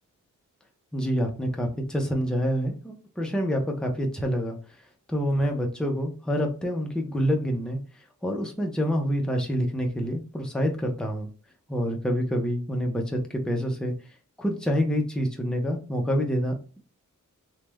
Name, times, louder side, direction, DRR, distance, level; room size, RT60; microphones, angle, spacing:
voice 1, 0.9-4.6 5.1-7.8 8.2-11.3 11.7-13.9 14.4-16.8, equal, 5° left, 2 dB, 0.4 m, -27 dB
3.1 x 2.0 x 3.3 m, 0.38 s
wide cardioid pair, 170°, 31 cm